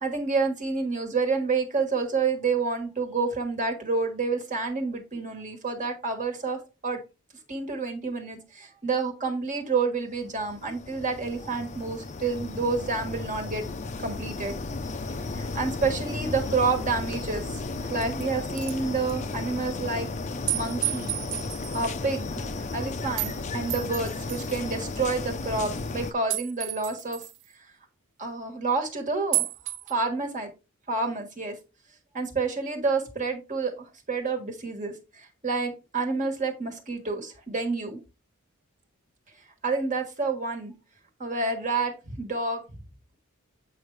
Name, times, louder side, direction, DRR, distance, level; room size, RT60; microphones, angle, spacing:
voice 1, 0.0-7.0 7.5-13.6 14.0-14.5 15.3-20.1 20.5-21.1 21.7-27.2 28.2-29.5 29.9-30.5 30.9-31.6 32.1-38.0 39.6-40.7 41.2-42.6, right 4 dB, 35° right, 3 dB, 1.5 m, -29 dB
sound 1, 10.2-26.1, left 3 dB, 35° left, 0.6 m, -34 dB
sound 2, 17.1-17.2 17.8-18.2 18.6-18.8 19.1-19.2 20.5-21.9 23.2-23.4 23.7-24.6 26.3-27.4 29.3-29.9, right 17 dB, 60° right, 0.4 m, -31 dB
8.0 x 4.8 x 3.2 m, 0.28 s
head